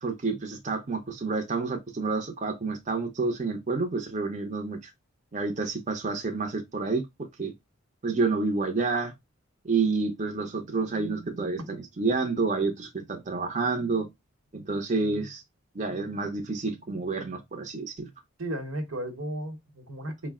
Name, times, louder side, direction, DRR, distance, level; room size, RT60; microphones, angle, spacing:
voice 1, 0.0-4.9 5.3-7.5 8.0-9.1 9.6-14.1 14.5-15.4 15.7-18.1, right 4 dB, 35° right, 0.6 m, -29 dB
voice 2, 18.4-20.3, right 1 dB, 80° right, 1.0 m, -34 dB
4.8 x 2.1 x 3.5 m
head